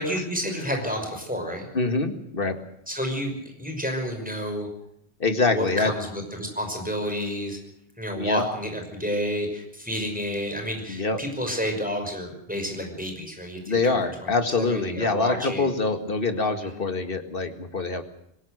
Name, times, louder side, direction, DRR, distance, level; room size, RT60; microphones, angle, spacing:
voice 1, 0.0-1.7 2.9-4.7 5.5-7.6 8.0-14.0 14.6-15.7 16.7-16.8, equal, 5° right, 3 dB, 5.7 m, -30 dB
voice 2, 1.7-2.6 5.2-5.9 8.2-8.4 10.9-11.2 13.7-18.0, left 3 dB, 55° left, 8 dB, 2.2 m, -25 dB
26.5 x 17.5 x 6.6 m, 0.75 s
omnidirectional pair, 1.1 m